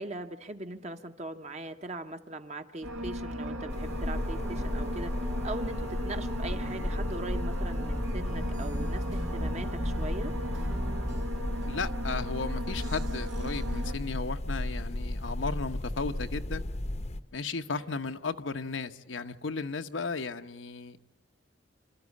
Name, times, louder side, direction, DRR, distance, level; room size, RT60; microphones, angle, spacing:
voice 1, 0.0-5.1 5.4-10.3 17.7-17.9, right 2 dB, 35° right, 1.1 m, -40 dB
sound 1, 2.8-13.9, equal, 85° right, 2.0 m, -37 dB
sound 2, 3.4-11.2, equal, 15° right, 1.1 m, -39 dB
sound 3, 3.7-17.2, left 1 dB, 35° left, 0.8 m, -34 dB
voice 2, 11.7-16.6 17.3-21.0, left 4 dB, 90° left, 1.0 m, -35 dB
27.0 x 13.0 x 8.4 m
head